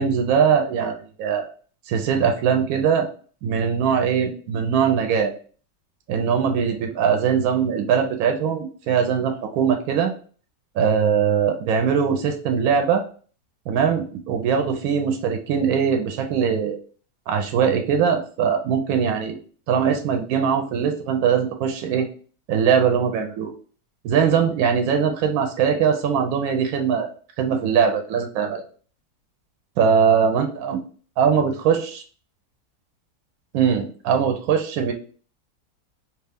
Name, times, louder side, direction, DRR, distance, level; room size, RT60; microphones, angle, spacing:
voice 1, 0.0-1.4 1.9-3.1 3.4-5.3 6.1-10.1 10.8-13.0 13.7-16.8 17.3-19.4 19.7-22.1 22.5-23.5 24.0-27.1 27.4-28.6 29.8-30.8 31.2-32.0 33.5-34.9, right 7 dB, 70° right, 4 dB, 1.0 m, -21 dB
2.6 x 2.3 x 3.3 m, 0.41 s
omnidirectional pair, 1.7 m